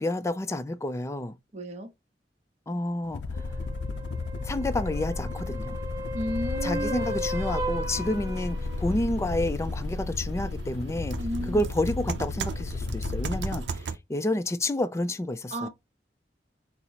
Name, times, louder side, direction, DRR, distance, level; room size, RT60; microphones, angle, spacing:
voice 1, 0.0-1.3 2.7-3.2 4.4-5.8 6.6-11.2 11.5-15.7, left 1 dB, 15° left, 0.4 m, -29 dB
voice 2, 1.5-1.9 6.1-7.2 11.2-11.7 15.5-15.7, equal, 40° right, 0.7 m, -33 dB
sound 1, 3.0-13.7, left 3 dB, 80° left, 0.5 m, -33 dB
sound 2, 3.3-9.0 13.1-13.2, equal, 15° right, 1.1 m, -36 dB
sound 3, 7.9-14.0, right 5 dB, 75° right, 0.5 m, -39 dB
4.3 x 2.0 x 3.9 m
head